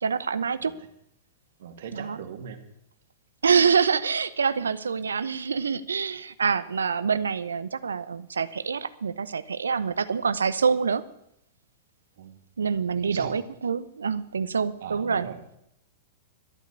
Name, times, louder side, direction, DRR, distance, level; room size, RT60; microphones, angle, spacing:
voice 1, 0.0-0.7 1.9-2.2 3.4-11.0 12.6-15.3, right 6 dB, 85° right, 15 dB, 0.8 m, -26 dB
voice 2, 1.6-2.6 12.2-12.4 13.0-13.3 14.8-15.4, right 7 dB, 65° right, 6 dB, 2.3 m, -39 dB
13.5 x 9.2 x 8.3 m, 0.77 s
hypercardioid pair, 105°, 0 cm